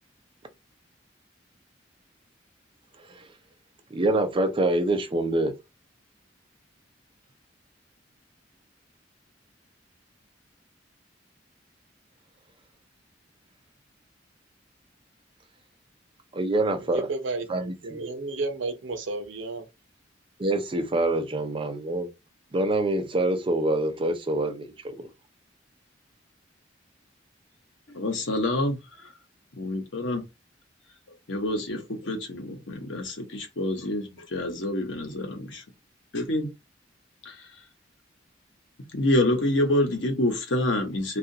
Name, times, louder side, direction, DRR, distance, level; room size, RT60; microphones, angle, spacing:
voice 1, 3.9-5.5 16.3-17.1 17.5-18.0 20.4-22.1 22.5-25.1, right 2 dB, 30° right, 0.5 m, -25 dB
voice 2, 16.8-19.6, right 3 dB, 80° right, 0.6 m, -32 dB
voice 3, 27.9-28.8 29.6-30.2 31.3-35.6 36.1-36.5 37.3-37.4 38.9-41.2, left 1 dB, 80° left, 0.9 m, -27 dB
2.7 x 2.4 x 2.6 m
head